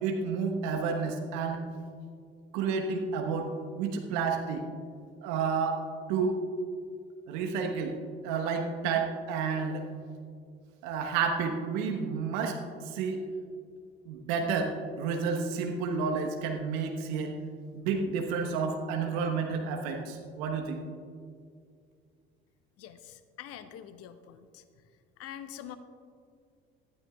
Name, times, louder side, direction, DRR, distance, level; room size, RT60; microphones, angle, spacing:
voice 1, 0.0-1.6 2.5-3.5 3.8-4.6 5.2-5.8 6.1-6.4 7.3-8.0 8.2-9.9 10.8-12.6 12.8-13.2 14.1-17.3 17.7-20.8, right 5 dB, 60° right, 3 dB, 1.1 m, -30 dB
voice 2, 22.8-24.6 25.2-25.8, left 10 dB, 50° left, 12 dB, 0.9 m, -45 dB
19.0 x 12.5 x 2.3 m, 2.2 s
figure-of-eight pair, 55°, 30 cm